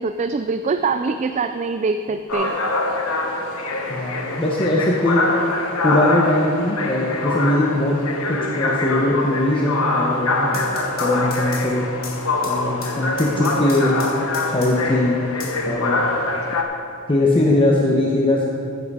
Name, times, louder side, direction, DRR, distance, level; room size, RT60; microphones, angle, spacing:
voice 1, 0.0-2.6, right 4 dB, 35° right, 9 dB, 0.3 m, -23 dB
sound 1, 2.3-16.6, left 2 dB, 80° left, 1.2 m, -24 dB
voice 2, 3.9-5.2 5.8-8.0 8.3-10.7 11.0-11.8 12.5-14.0 14.5-15.2 15.7-16.0 17.1-18.4, left 1 dB, 25° left, -2 dB, 0.9 m, -20 dB
sound 2, 10.5-15.0 15.4-16.4, left 4 dB, 45° left, 1.8 m, -37 dB
15.0 x 7.8 x 4.9 m, 2.7 s
head